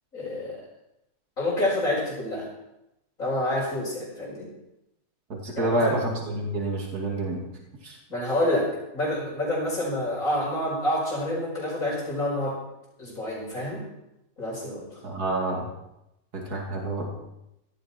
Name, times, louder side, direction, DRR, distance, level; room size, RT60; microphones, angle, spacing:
voice 1, 0.1-0.6 1.4-2.5 3.2-4.5 5.6-6.0 8.1-12.6 13.0-13.9 14.4-15.0, left 1 dB, 50° left, -9 dB, 6.3 m, -28 dB
voice 2, 5.3-7.4 7.8-8.0 15.0-15.7 16.3-17.1, right 1 dB, 65° right, -1 dB, 3.2 m, -28 dB
17.5 x 15.0 x 4.5 m, 0.88 s
omnidirectional pair, 1.8 m